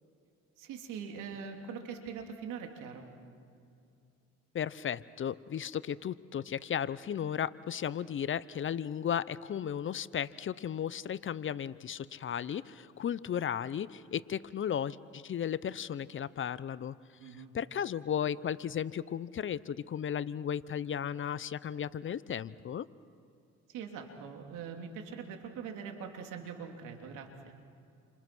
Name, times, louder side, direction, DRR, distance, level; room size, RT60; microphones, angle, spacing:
voice 1, 0.6-3.0 17.2-17.5 23.7-27.5, right 6 dB, 80° right, 3 dB, 3.1 m, -42 dB
voice 2, 4.5-16.9 17.2-17.3 17.5-22.9, left 9 dB, 40° left, 17 dB, 0.7 m, -35 dB
29.5 x 26.5 x 6.2 m, 2.5 s
cardioid pair, 95°, 31 cm